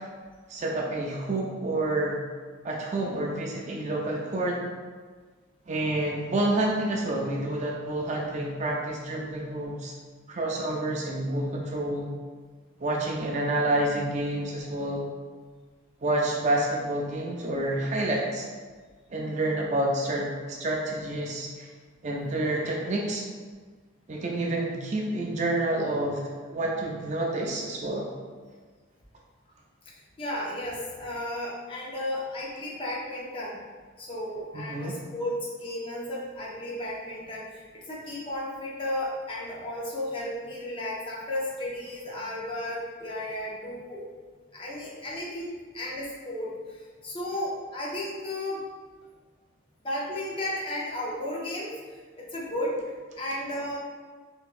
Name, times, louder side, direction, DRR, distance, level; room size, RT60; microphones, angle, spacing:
voice 1, 0.5-2.2 2.6-4.6 5.7-9.9 10.3-12.0 12.8-15.0 16.0-18.5 19.1-21.7 22.0-23.2 24.1-26.2 26.5-28.1 34.5-34.9, right 1 dB, 35° right, -1 dB, 0.4 m, -28 dB
voice 2, 29.9-33.6 34.0-44.1 44.5-48.6 49.8-53.8, left 1 dB, 25° left, -4 dB, 0.5 m, -34 dB
3.9 x 2.7 x 2.4 m, 1.5 s
head